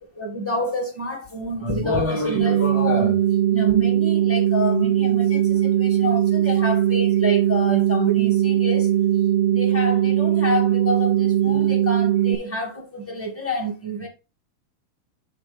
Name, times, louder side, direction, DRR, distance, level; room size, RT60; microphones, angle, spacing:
voice 1, 0.2-3.2 3.5-8.9 9.5-14.1, equal, 5° left, 1.5 m, -27 dB
sound 1, 2.4-12.4, right 11 dB, 80° right, 1.4 m, -20 dB
7.5 x 3.4 x 5.2 m
omnidirectional pair, 3.6 m